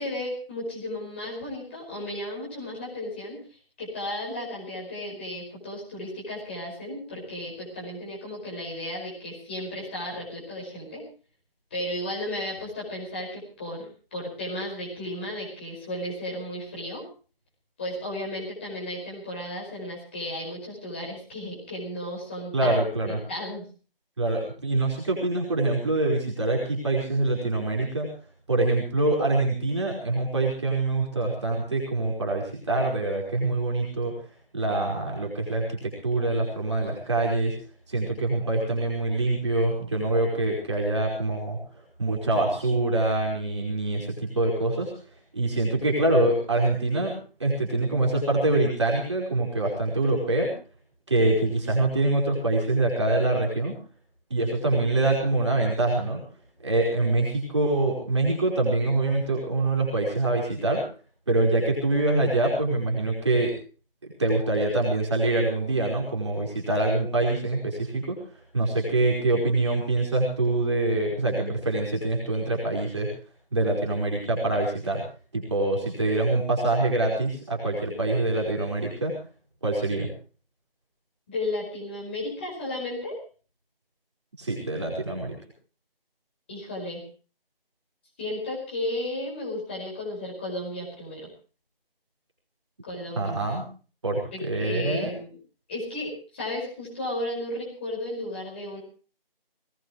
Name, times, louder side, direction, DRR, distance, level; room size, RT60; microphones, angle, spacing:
voice 1, 0.0-3.4 3.8-11.0 11.7-17.0 17.8-22.8 23.3-23.6 81.3-83.2 86.5-87.0 88.2-91.3 92.8-93.3 94.3-95.4 95.7-98.8, left 1 dB, 10° left, -4 dB, 5.3 m, -34 dB
voice 2, 22.5-23.2 24.2-28.1 28.5-34.1 34.5-37.5 37.9-41.6 42.0-44.9 45.3-47.1 47.4-50.5 51.1-53.7 54.3-56.2 56.6-60.8 61.3-63.5 64.0-68.2 68.5-73.1 73.5-75.0 75.3-79.1 79.6-80.1 84.4-85.3 93.1-93.6 94.0-95.1, right 2 dB, 30° right, -2 dB, 4.8 m, -25 dB
20.5 x 20.0 x 3.1 m, 0.38 s
figure-of-eight pair, 180°, 29 cm